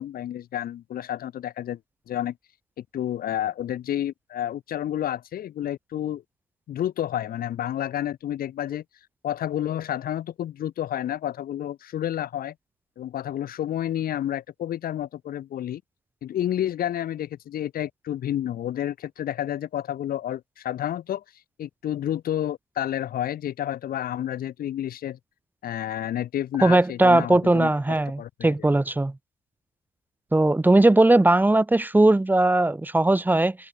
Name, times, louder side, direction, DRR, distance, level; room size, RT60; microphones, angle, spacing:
voice 1, 0.0-1.8 2.1-2.4 2.8-6.2 6.7-8.8 9.2-12.5 13.0-15.8 16.2-21.2 21.6-25.2 25.6-28.7, left 11 dB, 60° left, 6.7 m, -30 dB
voice 2, 26.6-29.1 30.3-33.6, right 2 dB, 10° right, 3.3 m, -19 dB
cardioid pair, 110°, 17 cm